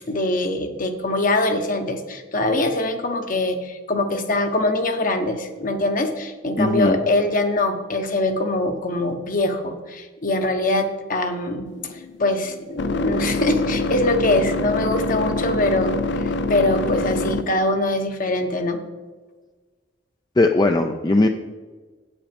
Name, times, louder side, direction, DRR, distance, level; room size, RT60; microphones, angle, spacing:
voice 1, 0.1-18.8, left 2 dB, 50° left, 6 dB, 1.1 m, -23 dB
voice 2, 6.6-7.0 20.4-21.3, left 2 dB, 25° left, 5 dB, 0.4 m, -18 dB
sound 1, 11.7-17.7, left 2 dB, 70° left, 0.5 m, -25 dB
8.5 x 8.3 x 5.2 m, 1.3 s
head